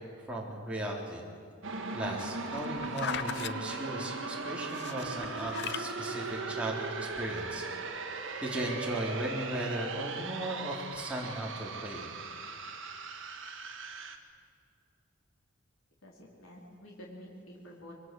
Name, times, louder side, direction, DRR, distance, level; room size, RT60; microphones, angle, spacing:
voice 1, 0.3-1.2 1.9-6.9 7.1-7.7 8.4-12.1, right 1 dB, 5° right, -3 dB, 3.8 m, -36 dB
sound 1, 1.6-14.2, right 4 dB, 65° right, 2.0 m, -38 dB
sound 2, 2.1-3.5 4.7-5.9 6.6-6.7, left 8 dB, 55° left, 0.6 m, -38 dB
voice 2, 16.0-17.9, equal, 90° left, -3 dB, 4.2 m, -49 dB
25.5 x 22.5 x 7.8 m, 2.4 s
head